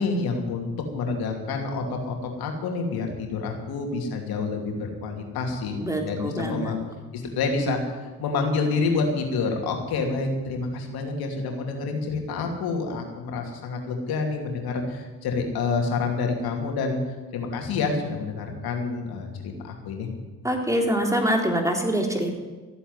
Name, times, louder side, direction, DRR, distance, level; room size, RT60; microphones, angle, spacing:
voice 1, 0.0-6.8 7.1-17.0 17.3-20.1, left 4 dB, 85° left, 2 dB, 2.8 m, -28 dB
voice 2, 5.8-6.8 20.4-22.4, right 1 dB, 10° right, 2 dB, 3.6 m, -25 dB
14.5 x 8.4 x 9.7 m, 1.3 s
cardioid pair, 70°, 36 cm